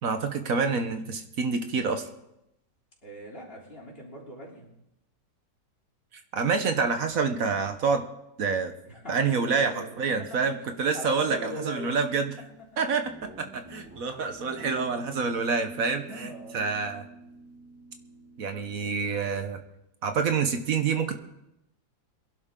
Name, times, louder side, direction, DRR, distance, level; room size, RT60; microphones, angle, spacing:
voice 1, 0.0-2.1 6.3-8.1 8.4-8.7 9.1-12.3 12.8-13.1 13.4-17.0 18.4-19.6 20.0-21.2, right 5 dB, 60° right, 7 dB, 1.3 m, -27 dB
voice 2, 3.0-4.7 8.8-10.0 10.9-12.0 16.1-16.6, equal, 35° left, -3 dB, 3.7 m, -40 dB
Guitar, 13.0-19.6, right 1 dB, 10° right, 2.5 m, -47 dB
22.0 x 11.5 x 3.8 m, 0.86 s
omnidirectional pair, 1.8 m